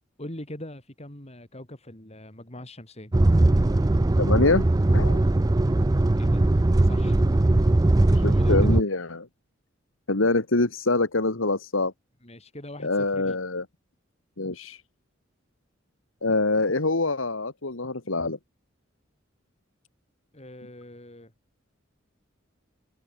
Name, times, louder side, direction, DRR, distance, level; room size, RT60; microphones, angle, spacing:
voice 1, 0.2-3.1 6.2-6.4 6.8-7.8 8.1-8.8 12.2-13.4 20.3-21.3, left 1 dB, 35° left, 4.8 m, -42 dB
sound 1, 3.1-8.8, right 2 dB, 20° right, 0.4 m, -20 dB
voice 2, 4.2-4.7 4.9-5.2 8.2-9.2 10.1-11.9 12.8-13.6 14.4-14.8 16.2-18.4, left 2 dB, 85° left, 2.0 m, -25 dB
open air
head